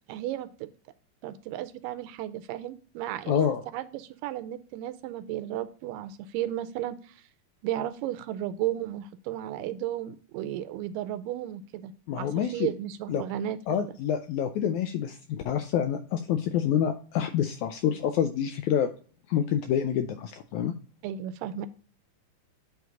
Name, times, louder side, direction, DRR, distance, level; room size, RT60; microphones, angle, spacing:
voice 1, 0.1-0.7 1.2-7.2 7.6-13.6 13.9-14.0 21.0-21.7, right 12 dB, 80° right, 12 dB, 2.2 m, -34 dB
voice 2, 3.3-3.6 12.1-12.7 13.1-13.2 13.7-18.9 19.3-20.7, left 9 dB, 80° left, 7 dB, 1.7 m, -27 dB
9.3 x 3.5 x 3.8 m, 0.40 s
omnidirectional pair, 3.9 m